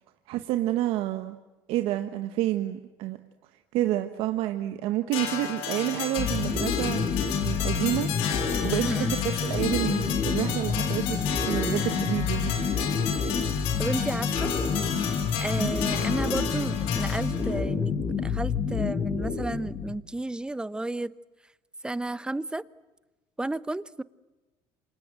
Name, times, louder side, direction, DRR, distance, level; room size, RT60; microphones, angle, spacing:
voice 1, 0.3-1.4 1.7-3.2 3.7-8.1 8.6-12.5 15.6-15.7, right 14 dB, 70° right, 1.6 m, -29 dB
sound 1, 5.1-17.6, left 8 dB, 75° left, 5.0 m, -33 dB
sound 2, 6.2-19.9, left 6 dB, 40° left, 5.3 m, -28 dB
voice 2, 8.8-9.1 13.8-14.5 15.4-18.0 18.2-21.1 21.8-22.6 23.4-24.0, right 2 dB, 10° right, 0.9 m, -32 dB
28.5 x 26.0 x 7.8 m
cardioid pair, 105°, 10 cm